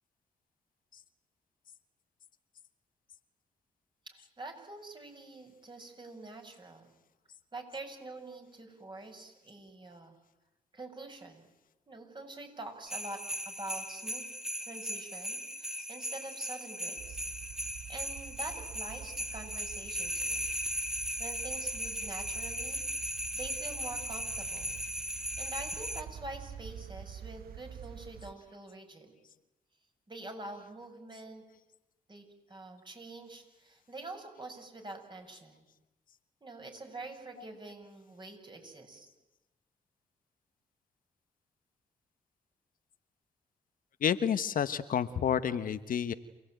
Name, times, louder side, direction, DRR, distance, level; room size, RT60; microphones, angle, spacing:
voice 1, 4.1-6.9 7.5-10.2 10.7-11.5 11.9-14.3 14.6-17.2 17.9-20.5 21.2-24.8 25.4-29.1 30.1-31.4 32.1-35.6 36.4-39.1, right 2 dB, 30° right, 4 dB, 7.6 m, -46 dB
sound 1, 12.9-26.0, equal, 5° right, 2.5 m, -37 dB
sound 2, 17.0-28.3, right 8 dB, 75° right, 0.9 m, -47 dB
voice 2, 44.0-46.1, left 8 dB, 65° left, 12 dB, 1.2 m, -29 dB
28.0 x 18.0 x 9.3 m, 1.0 s
supercardioid pair, 50°, 15 cm